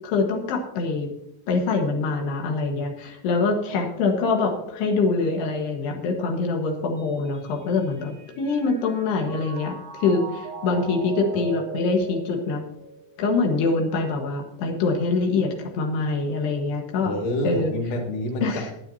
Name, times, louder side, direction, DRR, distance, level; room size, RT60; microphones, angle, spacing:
voice 1, 0.0-1.1 1.5-12.6 13.2-17.1 17.4-17.7 18.4-18.7, left 3 dB, 85° left, 2 dB, 3.6 m, -24 dB
Mallet percussion, 7.0-13.4, right 4 dB, 85° right, 0.6 m, -39 dB
voice 2, 17.0-18.7, left 1 dB, 60° left, 1 dB, 3.3 m, -28 dB
20.5 x 9.2 x 2.8 m, 0.80 s
omnidirectional pair, 4.6 m